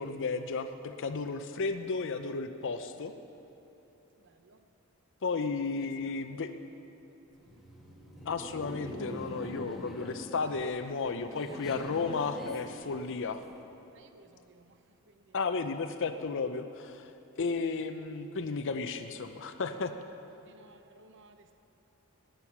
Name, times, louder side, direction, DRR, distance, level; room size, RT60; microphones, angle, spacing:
voice 1, 0.0-3.1 5.2-6.5 8.3-13.4 15.3-17.1 17.4-19.9, left 4 dB, 60° left, 8 dB, 0.6 m, -33 dB
voice 2, 4.2-4.6 5.8-5.9 13.9-14.8 15.1-15.3 20.4-21.6, right 3 dB, 55° right, 8 dB, 0.7 m, -59 dB
Laughter, 7.3-13.6, equal, ahead, 1.5 m, -44 dB
17.0 x 10.5 x 5.9 m, 3.0 s
head